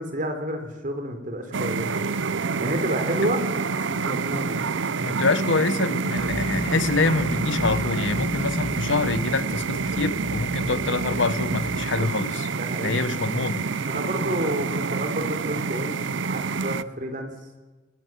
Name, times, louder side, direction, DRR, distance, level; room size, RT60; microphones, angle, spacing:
voice 1, 0.0-2.1 2.6-3.4 3.8-4.6 12.5-13.4 13.8-17.3, right 1 dB, 45° right, 3.8 m, -30 dB
sound 1, 1.5-16.8, right 4 dB, 70° right, 0.7 m, -28 dB
voice 2, 5.0-12.5 12.8-13.7, left 3 dB, 75° left, 1.1 m, -26 dB
sound 2, 6.2-11.8, equal, 5° right, 1.6 m, -33 dB
29.0 x 17.5 x 7.6 m
head